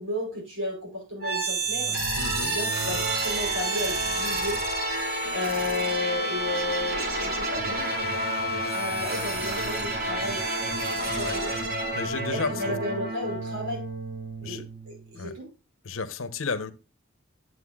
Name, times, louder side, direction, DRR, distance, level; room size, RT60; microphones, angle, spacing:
voice 1, 0.0-2.0 2.4-4.6 5.3-7.9 8.7-10.7 11.2-11.5 12.3-13.8 14.4-15.5, left 2 dB, 70° right, 5.4 m, -33 dB
sound 1, 1.2-15.1, right 2 dB, 50° right, 2.9 m, -29 dB
voice 2, 2.2-2.5 11.1-11.6 11.9-12.8 14.4-14.6 15.2-15.3 15.8-16.7, left 4 dB, 70° left, 0.9 m, -33 dB
9.7 x 7.8 x 2.4 m
head